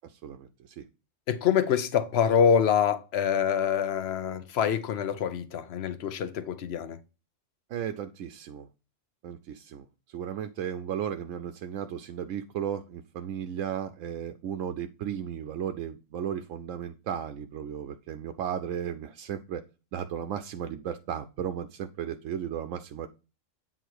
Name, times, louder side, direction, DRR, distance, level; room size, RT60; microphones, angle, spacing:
voice 1, 0.0-0.8 7.7-8.7 9.2-19.6 19.9-23.1, right 9 dB, 90° right, 1.0 m, -35 dB
voice 2, 1.3-7.0, left 8 dB, 60° left, 0.9 m, -25 dB
8.1 x 3.8 x 4.6 m
omnidirectional pair, 1.3 m